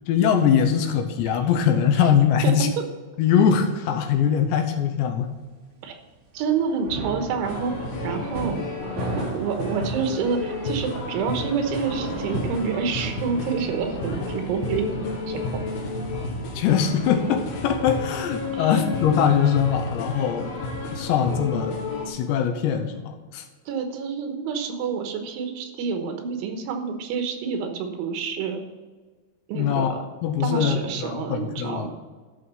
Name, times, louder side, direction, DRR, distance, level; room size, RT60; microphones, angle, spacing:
voice 1, 0.1-2.7 3.2-5.3 16.5-20.5 20.9-21.8 22.1-23.4 29.5-29.9 30.2-31.9, left 8 dB, 80° left, 6 dB, 2.9 m, -22 dB
voice 2, 6.3-8.6 9.3-14.9 15.3-15.4 18.5-18.8 23.7-28.6 29.5-30.0 30.4-31.9, right 6 dB, 85° right, 5 dB, 3.6 m, -28 dB
sound 1, 6.4-17.9, right 3 dB, 55° right, 3.9 m, -37 dB
sound 2, 7.4-22.1, left 3 dB, 60° left, 3.3 m, -32 dB
12.5 x 6.3 x 5.6 m, 1.4 s
omnidirectional pair, 5.5 m